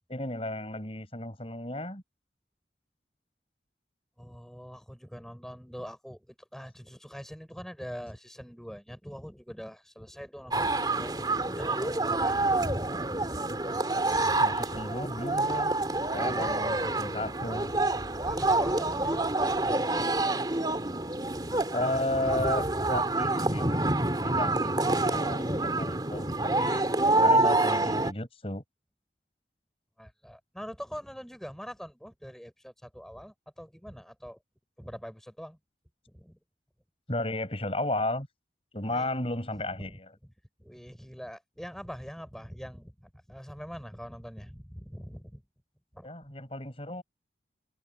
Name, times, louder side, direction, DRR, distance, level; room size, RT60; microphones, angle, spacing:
voice 1, 0.1-2.0 14.4-15.7 16.1-17.7 21.7-23.8 24.2-28.6 37.1-38.3 38.7-40.1 46.0-47.0, left 1 dB, 35° left, 7.1 m, -34 dB
voice 2, 4.2-12.5 13.0-13.2 16.2-16.7 18.2-19.2 19.5-19.9 20.2-20.3 30.0-34.4 34.8-35.6 36.1-36.4 38.8-39.3 39.8-40.0 40.6-45.4 45.9-46.1, equal, ahead, 6.7 m, -44 dB
sound 1, 10.5-28.1, right 2 dB, 25° right, 3.3 m, -27 dB
head